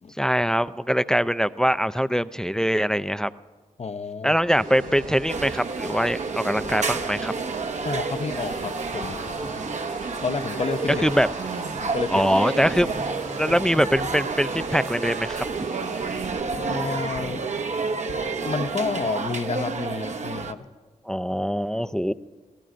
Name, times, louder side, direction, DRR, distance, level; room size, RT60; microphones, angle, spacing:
voice 1, 0.2-3.3 4.2-7.3 11.0-11.3 12.1-12.9 13.4-15.5 21.1-22.1, equal, 5° left, 14 dB, 0.5 m, -23 dB
voice 2, 3.8-4.4 7.8-9.3 10.2-11.1 11.8-12.3 13.5-13.6 16.7-17.4 18.4-20.7, left 4 dB, 45° left, 9 dB, 0.8 m, -30 dB
sound 1, 4.4-16.4, right 2 dB, 80° right, 4.8 m, -38 dB
sound 2, 5.3-20.5, right 4 dB, 55° right, 0.9 m, -30 dB
sound 3, 8.5-18.7, left 2 dB, 90° left, 3.6 m, -42 dB
27.0 x 16.5 x 2.6 m, 1.4 s
supercardioid pair, 40°, 15 cm